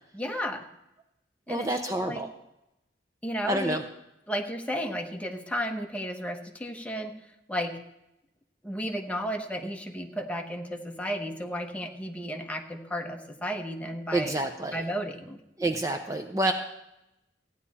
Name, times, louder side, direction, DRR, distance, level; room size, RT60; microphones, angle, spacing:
voice 1, 0.1-0.7 1.5-2.3 3.2-3.8 4.3-7.1 7.5-7.8 8.6-14.4 14.7-15.4, equal, 10° left, 3 dB, 1.0 m, -33 dB
voice 2, 1.5-2.3 3.4-3.8 14.1-14.8 15.6-16.5, right 1 dB, 20° right, 5 dB, 0.6 m, -28 dB
15.0 x 9.9 x 4.2 m, 0.87 s
head